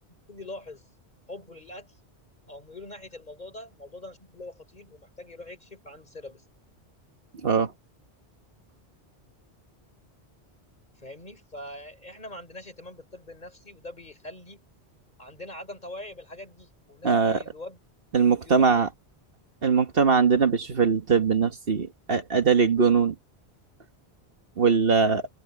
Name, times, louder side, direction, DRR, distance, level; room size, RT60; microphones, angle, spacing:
voice 1, 0.3-0.9 1.3-2.0 2.5-6.4 10.9-14.6 15.2-17.8 18.1-18.9, left 1 dB, 40° left, 4.6 m, -43 dB
voice 2, 17.0-17.4 18.1-18.9 19.6-23.1 24.6-25.3, right 5 dB, 60° right, 1.5 m, -21 dB
omnidirectional pair, 1.1 m